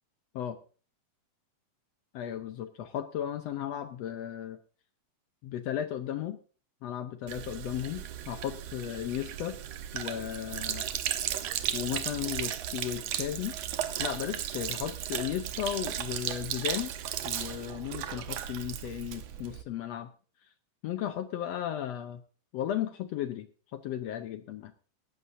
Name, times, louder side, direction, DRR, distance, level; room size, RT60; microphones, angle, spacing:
voice 1, 2.1-4.6 5.4-6.4 6.8-9.6 9.9-10.8 11.7-13.6 14.0-16.9 17.2-20.1 20.8-22.2 22.5-24.7, left 11 dB, 70° left, 10 dB, 1.6 m, -35 dB
Sink (filling or washing), 7.3-19.6, right 11 dB, 70° right, 1.9 m, -35 dB
18.0 x 14.0 x 2.7 m, 0.37 s
omnidirectional pair, 3.6 m